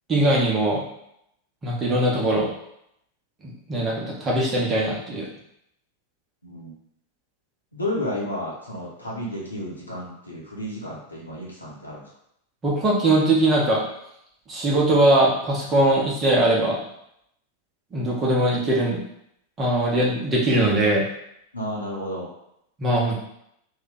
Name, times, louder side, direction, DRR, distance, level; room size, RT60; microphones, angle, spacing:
voice 1, 0.1-0.8 1.6-2.5 3.4-5.3 12.6-13.8 14.5-16.8 17.9-19.0 19.6-21.0 22.8-23.2, right 1 dB, 20° right, -4 dB, 1.1 m, -21 dB
voice 2, 6.4-6.7 7.7-12.0 21.5-22.3, left 1 dB, 80° left, -4 dB, 1.0 m, -32 dB
3.1 x 2.5 x 4.0 m, 0.75 s
figure-of-eight pair, 90°, 0 cm